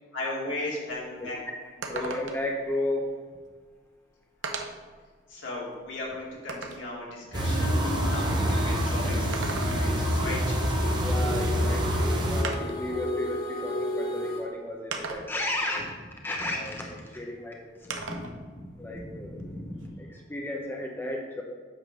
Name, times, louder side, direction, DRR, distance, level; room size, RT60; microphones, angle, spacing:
voice 1, 0.1-1.4 1.9-2.1 5.3-10.6 17.9-19.9, left 2 dB, 75° left, -5 dB, 2.4 m, -37 dB
sound 1, 0.9-1.0 1.3-1.4 1.8-2.6 3.6-3.7 4.4-4.9 5.5-6.9 9.1-10.1 11.6-11.7 12.4-12.9 13.9-14.0 14.9-15.5 17.9-18.4 18.7-19.9, right 4 dB, 75° right, 0.8 m, -37 dB
voice 2, 1.9-3.1 11.0-15.9 16.2-17.9 18.8-19.4 20.0-21.4, left 1 dB, 10° left, 0 dB, 0.6 m, -33 dB
sound 2, 7.3-12.4, equal, 25° right, 1.0 m, -26 dB
sound 3, 7.4-14.4, left 1 dB, 50° left, 1.9 m, -33 dB
8.4 x 3.7 x 6.2 m, 1.5 s
head